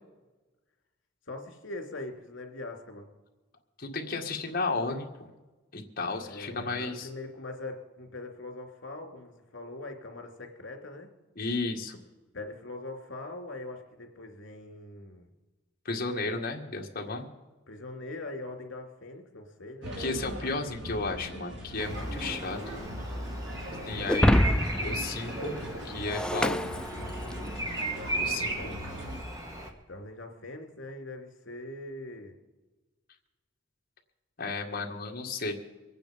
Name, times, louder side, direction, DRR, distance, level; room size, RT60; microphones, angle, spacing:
voice 1, 1.3-3.1 6.2-11.1 12.3-15.3 17.7-19.9 22.0-22.8 23.9-24.4 28.5-28.8 29.9-32.4, left 2 dB, 75° left, 3 dB, 2.8 m, -42 dB
voice 2, 3.8-5.3 5.7-7.1 11.4-12.0 15.9-17.3 20.0-22.6 23.9-24.3 24.8-25.6 25.8-26.6 28.2-28.5 34.4-35.5, left 3 dB, 50° left, 2 dB, 1.8 m, -33 dB
sound 1, 19.8-29.2, equal, 65° right, 3.2 m, -39 dB
Bird vocalization bird call bird song, 21.8-29.7, right 2 dB, 20° right, 1.7 m, -37 dB
Shatter, 24.1-27.6, left 1 dB, 5° left, 0.4 m, -27 dB
23.5 x 9.1 x 5.2 m, 1.2 s
head